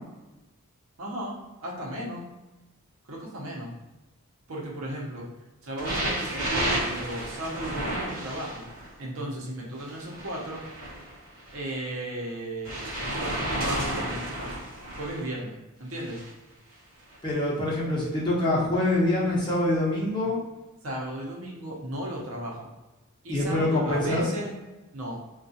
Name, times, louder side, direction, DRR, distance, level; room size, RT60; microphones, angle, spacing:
voice 1, 1.0-2.3 3.0-3.8 4.5-5.3 5.6-10.6 11.5-12.8 13.1-14.7 15.0-16.2 20.8-22.7 23.2-24.6 24.9-25.2, right 1 dB, 70° right, -3 dB, 0.8 m, -35 dB
sound 1, 5.8-8.9 9.8-11.6 12.6-15.2 15.9-16.3 17.1-17.2, right 1 dB, 40° right, 1.0 m, -32 dB
voice 2, 17.2-20.4 23.3-24.2, left 1 dB, 20° left, -6 dB, 0.8 m, -25 dB
3.6 x 2.3 x 2.7 m, 1.1 s
head